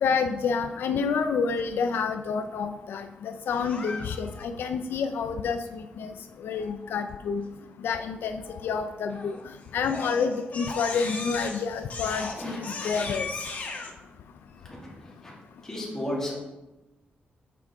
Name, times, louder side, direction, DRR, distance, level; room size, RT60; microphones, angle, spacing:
voice 1, 0.0-6.1 6.4-7.4 7.8-9.4 9.7-13.3, left 5 dB, 80° left, 7 dB, 0.3 m, -28 dB
Crying sobbing, 3.5-4.4 9.1-9.4 9.8-13.9, left 3 dB, 45° left, 0.9 m, -36 dB
voice 2, 14.8-15.3 15.6-16.4, left 1 dB, 15° left, -5 dB, 1.9 m, -34 dB
6.8 x 4.8 x 3.5 m, 1.1 s
wide cardioid pair, 140°, 4 cm